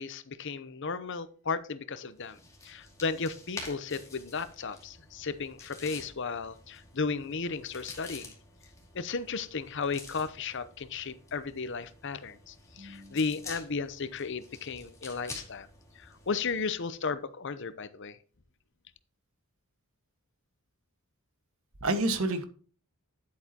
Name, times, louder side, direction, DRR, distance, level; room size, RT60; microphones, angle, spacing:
voice 1, 0.0-2.4 2.6-8.3 8.9-15.7 16.0-18.2, left 4 dB, 55° left, 0.7 m, -34 dB
sound 1, 2.1-16.8, left 3 dB, 15° left, 2.4 m, -49 dB
voice 2, 12.8-13.2 21.8-22.4, right 2 dB, 70° right, 1.5 m, -29 dB
10.5 x 8.4 x 2.9 m
head